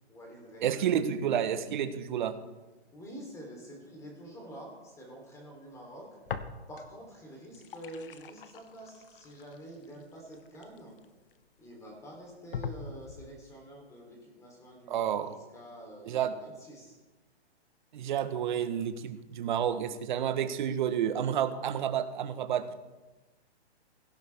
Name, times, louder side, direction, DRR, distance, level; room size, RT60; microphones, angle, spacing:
voice 1, 0.1-0.8 2.9-6.1 6.7-11.0 11.6-17.0, right 1 dB, 10° left, 0 dB, 3.8 m, -47 dB
voice 2, 0.6-2.3 14.9-15.3 16.0-16.3 17.9-22.7, right 9 dB, 45° right, 9 dB, 1.4 m, -30 dB
sound 1, 6.3-7.0 7.4-11.3 11.9-12.0 12.5-13.4, left 7 dB, 55° left, 1.2 m, -42 dB
17.5 x 15.5 x 3.7 m, 1.2 s
hypercardioid pair, 160°, 33 cm